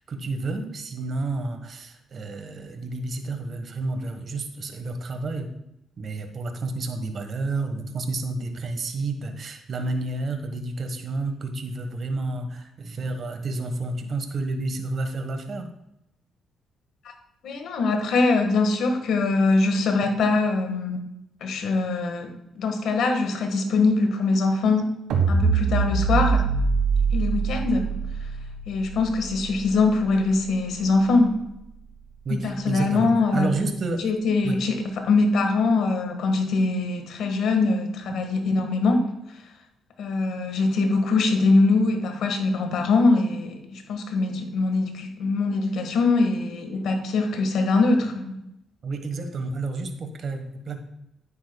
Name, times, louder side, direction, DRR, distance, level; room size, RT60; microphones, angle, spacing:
voice 1, 0.1-5.5 6.0-15.7 32.2-34.1 34.4-34.6 48.8-50.8, right 2 dB, 50° right, 6 dB, 1.3 m, -30 dB
voice 2, 17.4-21.0 21.4-22.3 22.5-24.9 25.3-26.5 27.1-27.9 28.7-31.4 32.3-33.5 34.0-39.1 40.0-48.4, left 3 dB, 75° left, 5 dB, 1.6 m, -22 dB
sound 1, 25.1-31.4, right 5 dB, 80° right, 1.4 m, -25 dB
10.0 x 9.1 x 2.3 m, 0.82 s
cardioid pair, 90°, 0 cm